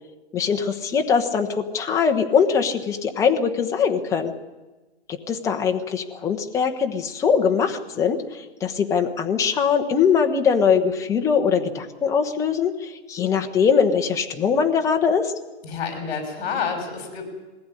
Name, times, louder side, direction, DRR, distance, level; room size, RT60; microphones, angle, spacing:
voice 1, 0.3-4.3 5.1-15.3, left 6 dB, 10° left, 4 dB, 1.0 m, -22 dB
voice 2, 15.6-17.2, left 6 dB, 45° left, 4 dB, 5.9 m, -28 dB
21.0 x 15.5 x 9.9 m, 1.2 s
hypercardioid pair, 165°, 32 cm